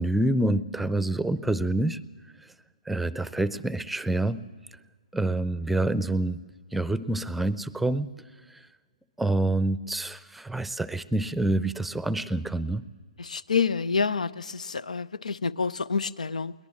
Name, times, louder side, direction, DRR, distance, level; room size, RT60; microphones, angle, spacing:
voice 1, 0.0-2.0 2.9-4.4 5.1-6.4 6.7-8.1 9.2-12.9, right 2 dB, 5° right, 16 dB, 0.6 m, -27 dB
voice 2, 13.2-16.5, left 5 dB, 85° left, 20 dB, 0.6 m, -28 dB
22.0 x 19.0 x 7.3 m, 1.5 s
hypercardioid pair, 135°, 4 cm